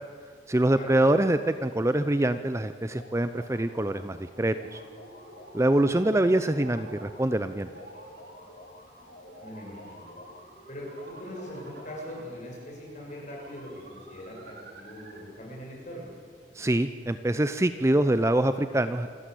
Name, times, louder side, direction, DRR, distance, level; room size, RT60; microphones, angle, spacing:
voice 1, 0.5-4.8 5.5-7.7 16.6-19.1, right 1 dB, 15° right, 11 dB, 0.6 m, -24 dB
sound 1, 2.9-4.1 4.5-7.3 7.7-10.5 10.9-12.5, left 1 dB, 55° left, 3.0 m, -51 dB
sound 2, 3.7-15.4, right 2 dB, 60° right, 3.1 m, -51 dB
voice 2, 9.4-10.1 10.7-16.1, equal, 40° left, -2 dB, 7.7 m, -41 dB
27.0 x 14.0 x 8.4 m, 2.1 s
head